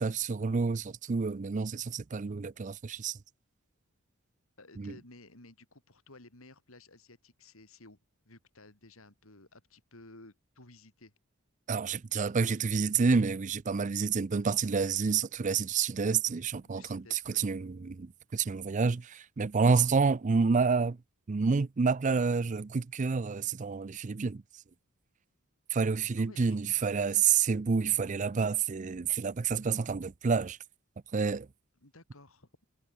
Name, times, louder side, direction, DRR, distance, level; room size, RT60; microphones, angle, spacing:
voice 1, 0.0-3.2 4.8-4.9 11.7-21.0 21.3-24.4 25.7-30.6 31.1-31.5, right 5 dB, 35° right, 0.4 m, -29 dB
voice 2, 4.6-8.0 8.3-11.1 16.6-17.5 26.2-26.9 31.8-32.5, left 2 dB, 75° left, 3.8 m, -55 dB
head